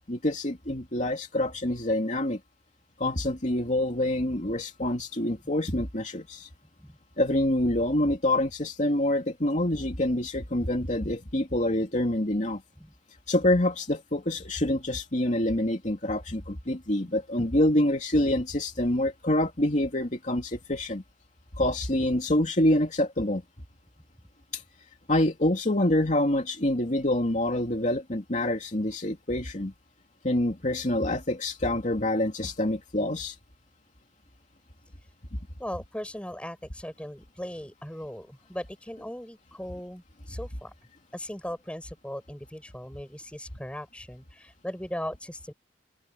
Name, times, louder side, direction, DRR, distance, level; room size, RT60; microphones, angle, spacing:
voice 1, 0.1-2.4 3.0-6.5 7.2-12.6 13.3-21.0 21.6-23.4 24.5-24.6 25.1-29.7 30.2-33.4, left 1 dB, 45° left, 2.7 m, -26 dB
voice 2, 35.6-40.7 41.1-45.5, equal, 5° left, 5.0 m, -38 dB
open air
head